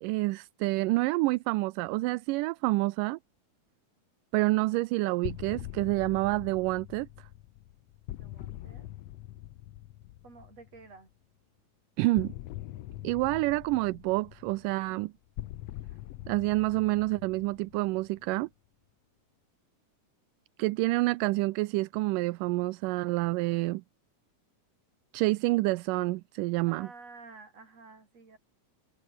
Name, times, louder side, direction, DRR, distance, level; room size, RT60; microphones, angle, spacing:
voice 1, 0.0-3.2 4.3-7.3 12.0-12.3 13.0-15.1 16.3-18.5 20.6-23.8 25.1-26.9, right 21 dB, 80° right, 2.1 m, -28 dB
sound 1, 5.2-11.0 12.2-18.4, left 15 dB, 80° left, 1.5 m, -43 dB
voice 2, 8.2-8.9 10.2-11.1 26.7-28.4, right 4 dB, 45° right, 7.1 m, -51 dB
omnidirectional pair, 3.9 m